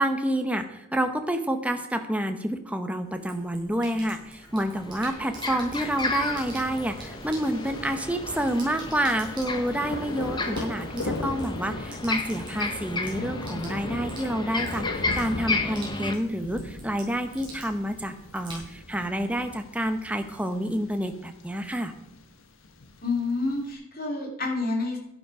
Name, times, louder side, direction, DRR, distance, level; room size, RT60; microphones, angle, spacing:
voice 1, 0.0-21.9, right 1 dB, 5° right, 6 dB, 0.9 m, -28 dB
Sink (filling or washing), 3.0-19.0, right 2 dB, 20° right, 4.5 m, -48 dB
sound 1, 4.1-4.2 4.5-16.1, left 3 dB, 20° left, 1.1 m, -33 dB
Thunder, 5.8-23.7, left 2 dB, 70° left, 1.2 m, -39 dB
voice 2, 23.0-25.0, left 3 dB, 40° left, 0 dB, 2.9 m, -28 dB
11.5 x 11.0 x 4.8 m, 0.86 s
head